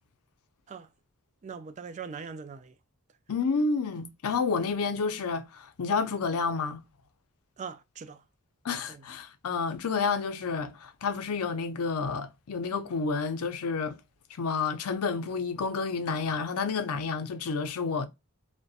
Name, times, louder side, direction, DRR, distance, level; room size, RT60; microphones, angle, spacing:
voice 1, 1.4-2.7 7.6-8.2 8.9-9.0, right 6 dB, 35° right, 0.3 m, -41 dB
voice 2, 3.3-6.8 8.6-14.0 14.3-18.1, left 4 dB, 90° left, 0.5 m, -30 dB
2.6 x 2.1 x 2.3 m
head